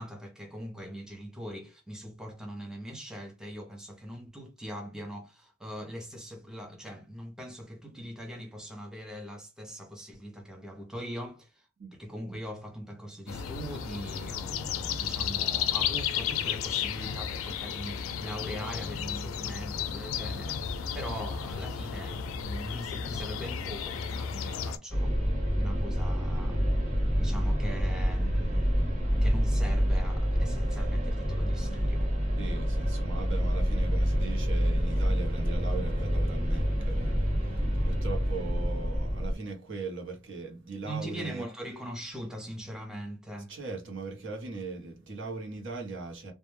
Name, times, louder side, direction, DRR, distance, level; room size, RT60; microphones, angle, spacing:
voice 1, 0.0-26.6 27.2-32.2 40.8-43.5, equal, 5° right, 0.4 m, -41 dB
sound 1, 13.3-24.8, left 7 dB, 85° left, 0.3 m, -33 dB
sound 2, 24.9-39.3, equal, 40° right, 1.1 m, -27 dB
voice 2, 32.4-41.5 43.5-46.3, right 3 dB, 65° right, 0.8 m, -39 dB
2.1 x 2.1 x 3.0 m
head